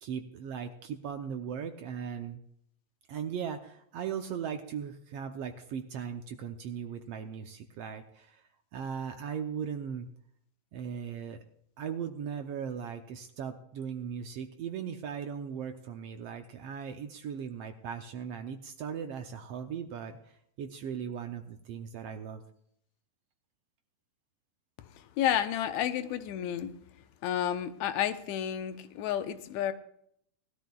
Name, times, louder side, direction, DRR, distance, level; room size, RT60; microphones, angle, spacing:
voice 1, 0.0-2.4 3.1-8.4 8.7-10.1 10.7-11.4 11.8-22.4, right 7 dB, 75° right, 6 dB, 1.5 m, -38 dB
voice 2, 25.0-26.7 27.2-29.7, left 10 dB, 80° left, 10 dB, 2.0 m, -31 dB
19.5 x 13.0 x 2.3 m, 0.70 s
omnidirectional pair, 3.3 m